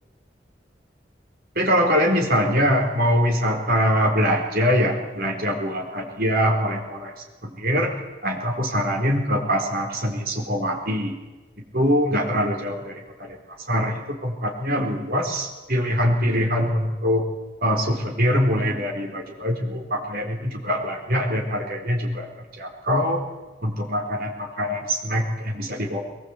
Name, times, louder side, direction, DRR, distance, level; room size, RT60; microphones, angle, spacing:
voice 1, 1.5-7.1 7.4-7.9 8.2-11.1 11.7-13.4 13.7-17.2 17.6-22.3 22.6-23.2 23.6-26.0, equal, 55° right, 1 dB, 4.4 m, -23 dB
21.5 x 19.5 x 8.4 m, 1.2 s
head